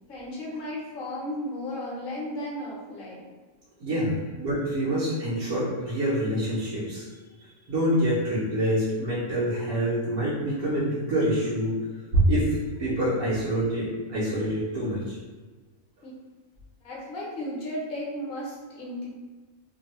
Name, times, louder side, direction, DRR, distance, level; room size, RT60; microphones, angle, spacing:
voice 1, 0.1-3.3 16.0-16.1 16.8-19.1, left 1 dB, 45° left, -4 dB, 0.9 m, -34 dB
voice 2, 3.8-7.1 7.7-11.8 12.1-15.2, right 1 dB, 65° right, -10 dB, 1.2 m, -26 dB
2.9 x 2.3 x 2.9 m, 1.3 s
omnidirectional pair, 1.5 m